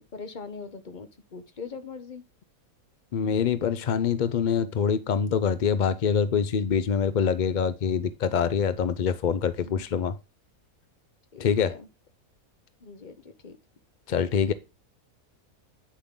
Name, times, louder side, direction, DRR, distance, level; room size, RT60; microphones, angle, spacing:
voice 1, 0.0-2.2 9.6-9.9 11.3-11.9 12.8-13.6, left 5 dB, 35° left, 1.0 m, -41 dB
voice 2, 3.1-10.1 11.4-11.7 14.1-14.5, left 7 dB, 70° left, 0.4 m, -25 dB
9.6 x 7.1 x 3.7 m
omnidirectional pair, 1.5 m